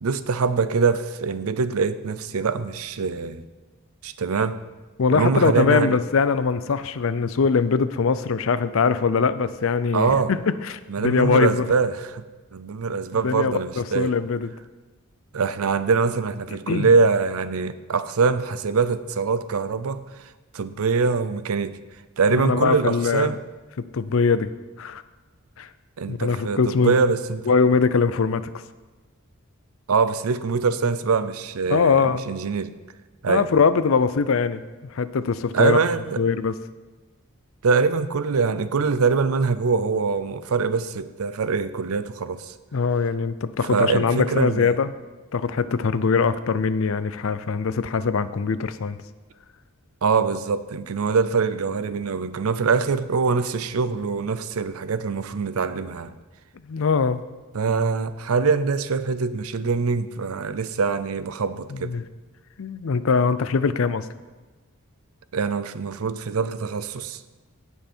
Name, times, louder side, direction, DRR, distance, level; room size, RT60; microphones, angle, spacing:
voice 1, 0.0-3.4 4.0-4.6 5.1-6.0 9.9-10.3 10.9-12.2 12.5-14.1 15.3-20.0 20.5-21.8 22.2-23.4 26.0-27.5 29.9-32.7 33.2-33.5 35.5-36.2 37.6-42.5 43.7-44.7 50.0-56.1 57.5-62.0 65.3-67.2, right 5 dB, 85° right, 0.6 m, -23 dB
voice 2, 5.0-10.4 10.6-11.7 13.2-14.5 16.7-16.9 22.4-23.3 23.9-24.5 24.8-25.0 25.6-25.7 26.1-26.9 27.5-28.4 31.7-32.2 33.3-34.6 34.9-35.8 36.2-36.5 42.7-44.9 45.3-49.0 56.7-57.2 61.7-62.0 62.6-64.1, left 5 dB, 65° left, 0.5 m, -22 dB
16.0 x 5.5 x 4.4 m
head